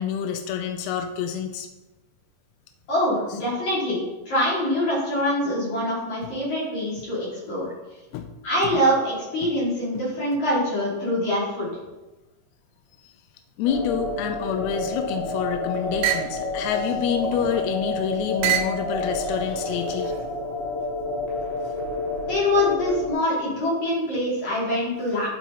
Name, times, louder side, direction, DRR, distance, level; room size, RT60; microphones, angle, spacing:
voice 1, 0.0-1.7 8.1-8.3 9.4-9.5 13.6-20.2, left 8 dB, 85° left, 5 dB, 2.6 m, -28 dB
voice 2, 2.9-7.7 8.4-11.7 22.3-25.3, left 1 dB, 50° left, -7 dB, 4.0 m, -24 dB
sound 1, 13.7-23.1, left 2 dB, 70° left, 4.7 m, -29 dB
sound 2, 14.9-15.5 16.0-16.4 17.1-17.8 18.4-18.8 19.7-20.3, right 11 dB, 85° right, 2.5 m, -28 dB
11.0 x 4.8 x 4.0 m, 1.1 s
omnidirectional pair, 4.6 m